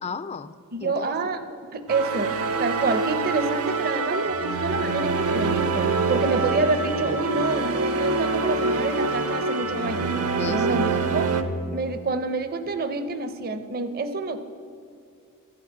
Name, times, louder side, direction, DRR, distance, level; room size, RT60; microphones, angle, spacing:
voice 1, 0.0-0.5 0.8-1.1 10.4-11.1, left 4 dB, 30° left, 14 dB, 0.4 m, -34 dB
voice 2, 0.7-2.3 2.6-10.1 10.5-11.3 11.7-14.4, right 3 dB, 45° right, 10 dB, 0.6 m, -27 dB
sound 1, 1.9-11.4, right 3 dB, 75° right, 0.9 m, -25 dB
13.5 x 6.0 x 8.1 m, 2.4 s
head